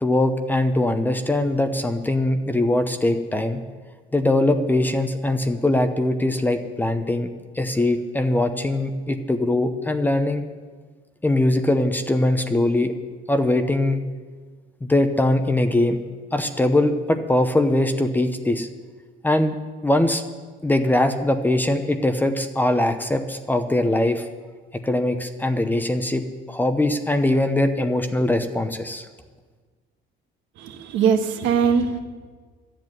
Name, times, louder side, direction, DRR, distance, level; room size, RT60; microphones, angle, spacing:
voice 1, 0.0-3.6 4.1-7.3 7.6-10.4 11.2-12.9 13.3-14.0 14.8-16.0 16.3-18.7 19.2-19.5 19.8-20.2 20.6-24.3 24.8-26.2 26.5-29.1, left 1 dB, 10° left, 8 dB, 0.7 m, -21 dB
voice 2, 30.6-32.0, right 6 dB, 75° right, 5 dB, 1.5 m, -21 dB
13.0 x 7.6 x 9.4 m, 1.5 s
cardioid pair, 145°, 20 cm